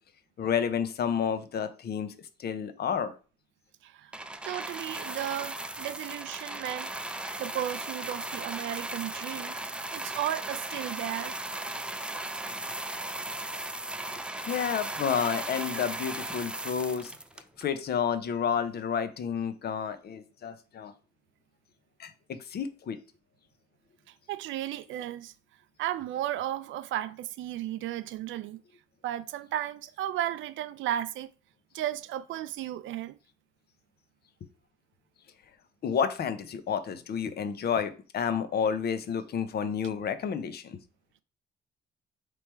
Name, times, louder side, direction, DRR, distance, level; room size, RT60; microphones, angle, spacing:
voice 1, 0.4-2.1 2.4-3.1 14.4-17.1 17.6-20.9 22.0-23.0 35.8-40.8, left 7 dB, 55° left, 0.6 m, -30 dB
sound 1, 4.1-17.8 18.6-18.7, right 1 dB, 5° right, 0.3 m, -37 dB
voice 2, 4.4-9.6 9.9-11.4 24.1-25.3 25.8-28.6 29.0-31.3 31.7-33.2, right 12 dB, 80° right, 0.4 m, -34 dB
3.3 x 3.0 x 4.5 m
cardioid pair, 90°, 20 cm